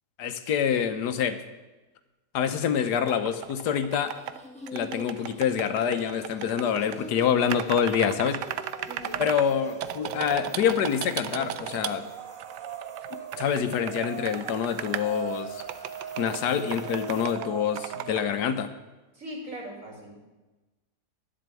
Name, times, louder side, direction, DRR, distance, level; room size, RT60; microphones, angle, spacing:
voice 1, 0.2-1.4 2.3-4.2 4.7-8.4 9.2-12.1 13.4-15.6 16.2-18.7, left 8 dB, 75° left, 10 dB, 1.4 m, -26 dB
sound 1, 3.1-4.4 4.7-7.0 7.5-9.5 9.8-11.9 12.4-15.0 15.6-16.4 16.7-17.5 17.8-18.3, right 11 dB, 90° right, 1.2 m, -36 dB
sound 2, 3.8-17.3, left 1 dB, 5° left, 1.3 m, -46 dB
sound 3, 7.9-8.5 8.8-10.6 11.4-18.6, right 11 dB, 70° right, 0.8 m, -41 dB
voice 2, 8.9-9.4 19.1-20.2, equal, 50° right, -1 dB, 3.2 m, -40 dB
11.0 x 7.7 x 8.2 m, 1.1 s
omnidirectional pair, 1.8 m